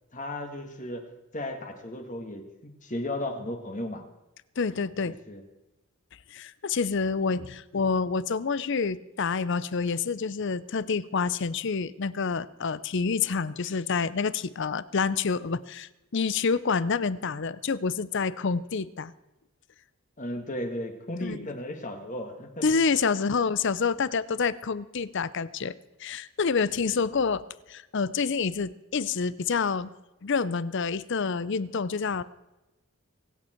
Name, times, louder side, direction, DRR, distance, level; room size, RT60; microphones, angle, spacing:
voice 1, 0.1-1.1 1.3-4.0 5.0-5.4 20.2-22.6, left 1 dB, 35° left, 5 dB, 1.9 m, -35 dB
voice 2, 4.6-5.2 6.3-19.1 21.2-21.5 22.6-25.7 26.0-29.9 30.2-32.2, left 5 dB, 55° left, 17 dB, 0.6 m, -28 dB
23.5 x 9.0 x 4.5 m, 0.99 s
head